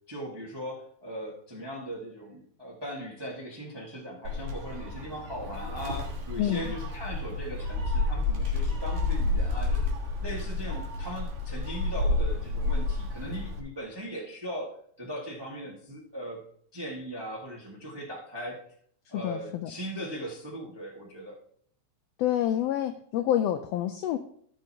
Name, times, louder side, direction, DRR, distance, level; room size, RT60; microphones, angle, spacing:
voice 1, 0.1-9.9 10.2-16.4 16.7-18.6 19.1-21.4, equal, 20° right, -2 dB, 0.6 m, -39 dB
Gull seagull, 4.3-13.6, left 2 dB, 80° right, 2.9 m, -30 dB
voice 2, 6.4-6.8 19.1-19.7 22.2-24.2, left 11 dB, 90° left, 8 dB, 1.4 m, -28 dB
15.0 x 6.5 x 2.8 m, 0.63 s
omnidirectional pair, 3.4 m